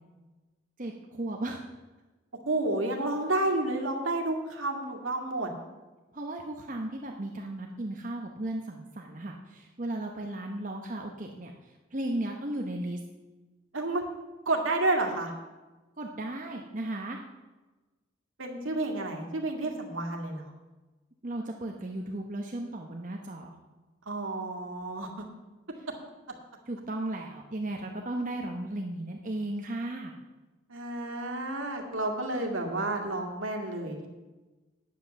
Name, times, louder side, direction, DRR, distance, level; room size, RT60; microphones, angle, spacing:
voice 1, 0.8-1.7 6.1-13.0 16.0-17.2 21.2-23.5 25.8-25.9 26.7-30.1, right 1 dB, 40° right, 2 dB, 0.9 m, -35 dB
voice 2, 2.5-5.5 13.7-14.1 14.5-15.3 18.4-20.5 24.1-25.1 30.7-34.1, right 2 dB, 80° right, 2 dB, 2.0 m, -30 dB
9.6 x 8.1 x 6.9 m, 1.2 s
head